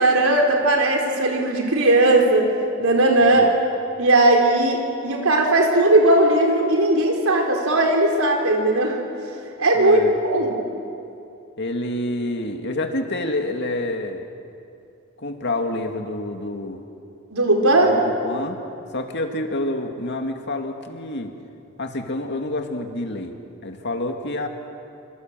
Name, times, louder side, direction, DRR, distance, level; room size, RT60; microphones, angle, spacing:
voice 1, 0.0-2.5 2.8-3.5 4.0-9.0 9.6-10.6 17.3-17.9, right 2 dB, 90° right, 1 dB, 4.5 m, -18 dB
voice 2, 9.7-10.1 11.6-14.3 15.2-16.8 17.8-18.6 18.9-21.3 21.8-23.3 23.6-24.5, left 1 dB, 55° left, 4 dB, 2.4 m, -28 dB
28.0 x 26.0 x 7.7 m, 2.6 s
head